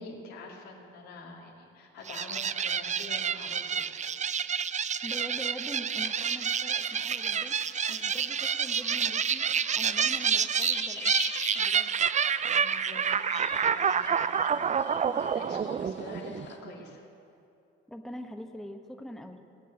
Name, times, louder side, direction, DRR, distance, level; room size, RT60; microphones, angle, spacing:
voice 1, 0.0-3.9 12.5-14.7 15.2-17.0, left 2 dB, 75° left, -2 dB, 2.4 m, -46 dB
sound 1, 2.1-16.7, right 7 dB, 25° right, 0.4 m, -29 dB
voice 2, 5.0-7.6 7.9-11.1 11.5-11.9 15.8-15.9 17.9-19.4, equal, ahead, 4 dB, 1.2 m, -43 dB
sound 2, 6.0-16.6, left 3 dB, 35° left, 2.1 m, -43 dB
17.5 x 8.3 x 9.0 m, 2.7 s
hypercardioid pair, 50°, 32 cm